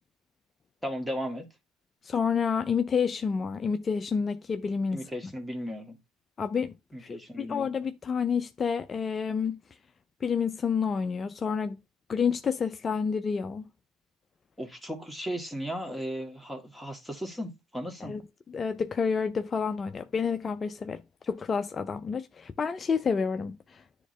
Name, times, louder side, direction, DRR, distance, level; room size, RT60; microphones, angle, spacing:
voice 1, 0.8-1.5 4.9-6.0 6.9-7.7 14.6-18.2, equal, 5° right, 1.9 m, -36 dB
voice 2, 2.0-5.3 6.4-6.7 7.0-9.6 10.2-11.8 12.1-13.6 18.0-18.2 18.5-23.8, left 6 dB, 30° left, 0.5 m, -29 dB
9.9 x 3.7 x 3.2 m
supercardioid pair, 90°, 0 cm